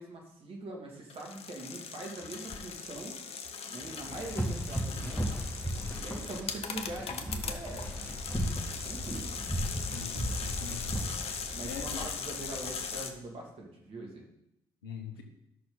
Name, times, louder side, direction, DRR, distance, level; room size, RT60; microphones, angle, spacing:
voice 1, 0.0-3.2 3.7-5.3 5.9-8.1 8.8-9.3 11.5-14.2, right 2 dB, 50° right, 0 dB, 2.7 m, -43 dB
sound 1, 1.1-13.1, left 6 dB, 55° left, 1.0 m, -39 dB
sound 2, 4.1-12.8, equal, 20° left, 3.4 m, -36 dB
voice 2, 9.9-11.0 11.6-12.0 14.8-15.2, left 6 dB, 85° left, 5 dB, 1.0 m, -42 dB
12.5 x 6.2 x 4.1 m, 0.80 s
hypercardioid pair, 45°, 12 cm